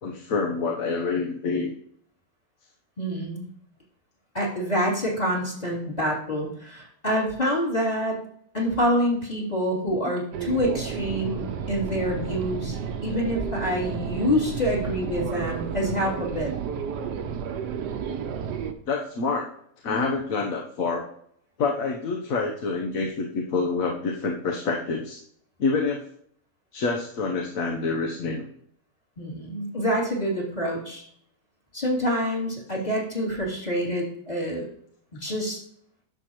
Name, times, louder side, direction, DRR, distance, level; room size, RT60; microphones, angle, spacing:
voice 1, 0.0-1.7 10.0-10.2 18.9-19.5 19.8-21.0 21.6-25.2 25.6-26.1 26.7-28.5, left 4 dB, 60° left, 1 dB, 1.3 m, -27 dB
voice 2, 3.0-3.5 4.3-8.2 8.5-12.8 13.0-16.5 29.2-31.0 31.7-34.7 35.1-35.6, equal, 25° left, -4 dB, 3.0 m, -26 dB
sound 1, 10.3-18.7, right 7 dB, 85° right, 1.4 m, -32 dB
11.0 x 7.1 x 3.0 m, 0.65 s
omnidirectional pair, 1.7 m